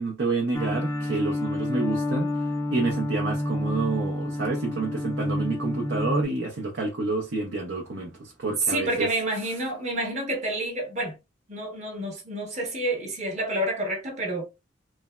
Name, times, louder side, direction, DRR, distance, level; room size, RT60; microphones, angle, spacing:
voice 1, 0.0-9.1, right 3 dB, 80° right, 0.6 m, -29 dB
sound 1, 0.5-6.2, left 1 dB, 15° left, 0.4 m, -29 dB
voice 2, 8.7-11.1 11.5-14.4, right 1 dB, 35° right, 0.9 m, -29 dB
3.3 x 2.1 x 2.2 m
head